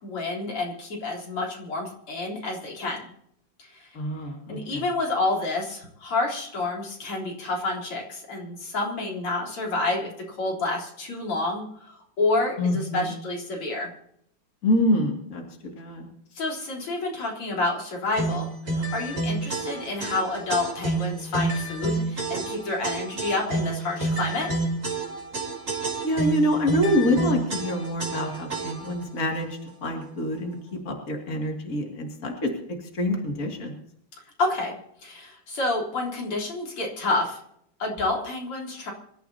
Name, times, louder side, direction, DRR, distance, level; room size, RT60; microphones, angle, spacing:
voice 1, 0.0-3.1 3.6-3.9 4.5-13.9 16.3-24.5 34.4-37.4 37.8-38.9, left 2 dB, 80° left, -2 dB, 4.7 m, -29 dB
voice 2, 3.9-4.8 12.6-13.1 14.6-15.4 15.7-16.1 26.0-32.5 32.9-33.7, left 1 dB, 40° left, 1 dB, 2.8 m, -26 dB
sound 1, 18.2-29.0, right 2 dB, 35° right, 3.7 m, -29 dB
26.0 x 13.5 x 2.9 m, 0.71 s
omnidirectional pair, 2.4 m